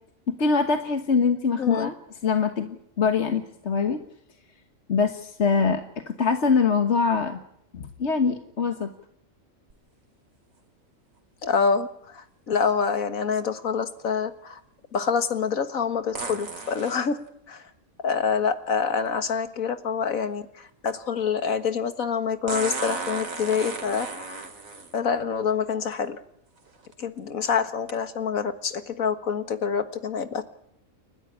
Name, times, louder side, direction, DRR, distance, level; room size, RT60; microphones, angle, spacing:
voice 1, 0.4-1.9 2.2-4.0 4.9-5.8 6.2-7.4 7.7-8.9, left 5 dB, 55° left, 6 dB, 1.7 m, -23 dB
voice 2, 1.6-1.9 11.4-14.6 14.9-17.2 17.5-17.6 18.0-24.4 24.9-26.2 27.0-30.4, left 6 dB, 85° left, 9 dB, 2.0 m, -26 dB
sound 1, 9.7-9.8 16.1-17.0 19.1-19.2 22.5-25.0 25.9-26.0 26.7-26.9 27.9-28.0, right 3 dB, 80° right, 2.9 m, -34 dB
30.0 x 12.5 x 10.0 m, 0.74 s
omnidirectional pair, 1.4 m